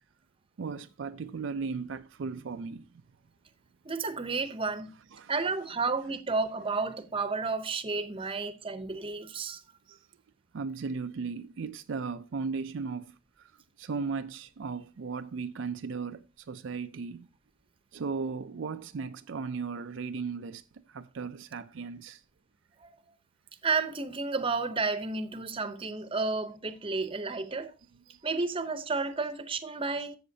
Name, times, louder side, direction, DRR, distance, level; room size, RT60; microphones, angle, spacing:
voice 1, 0.6-2.9 5.1-5.3 9.9-10.0 10.5-13.5 13.8-17.3 17.9-20.6 20.9-22.2 28.1-28.2, right 5 dB, 70° right, 0.4 m, -36 dB
voice 2, 3.8-4.9 5.3-9.6 22.8-22.9 23.6-27.7 28.2-30.2, right 4 dB, 30° right, 0.8 m, -31 dB
13.0 x 7.3 x 2.8 m
head